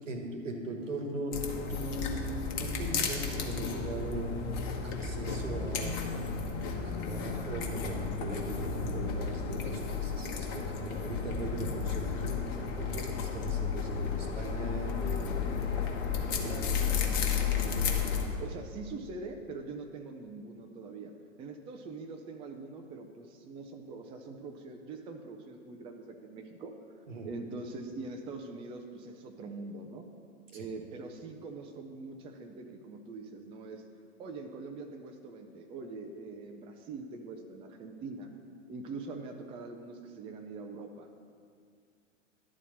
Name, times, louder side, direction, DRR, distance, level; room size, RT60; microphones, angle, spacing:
voice 1, 0.1-4.5 4.8-6.2 6.8-17.0 27.1-27.3 30.5-30.7, right 2 dB, 75° right, 4 dB, 1.4 m, -40 dB
sound 1, 1.3-18.3, left 5 dB, 40° left, 1.2 m, -33 dB
voice 2, 18.4-21.1 21.4-26.7 27.2-30.1 30.5-33.8 34.2-38.3 38.7-41.1, right 3 dB, 15° right, 4 dB, 0.4 m, -43 dB
11.0 x 4.1 x 7.3 m, 2.2 s
figure-of-eight pair, 100°, 38 cm